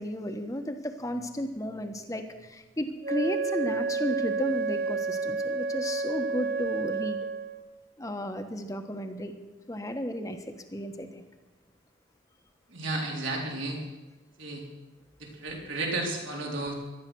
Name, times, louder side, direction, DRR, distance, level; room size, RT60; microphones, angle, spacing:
voice 1, 0.0-7.2 8.0-9.3 9.7-11.2, equal, 15° left, 6 dB, 1.2 m, -33 dB
Wind instrument woodwind instrument, 3.0-7.7, right 4 dB, 50° right, 0.8 m, -30 dB
voice 2, 12.7-13.8 14.4-14.6 15.2-16.7, right 2 dB, 75° right, -1 dB, 4.0 m, -33 dB
18.0 x 12.5 x 6.2 m, 1.1 s
head